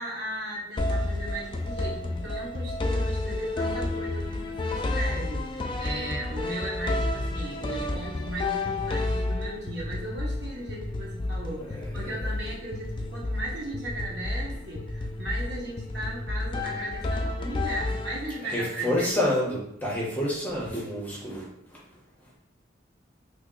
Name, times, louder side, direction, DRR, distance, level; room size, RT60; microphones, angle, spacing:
voice 1, 0.0-19.1, right 1 dB, 65° right, -4 dB, 1.1 m, -37 dB
sound 1, 0.8-18.6, left 2 dB, 25° left, 0.3 m, -31 dB
voice 2, 11.6-12.2 18.4-22.4, left 1 dB, 10° left, -5 dB, 0.8 m, -30 dB
2.8 x 2.8 x 3.7 m, 0.74 s
head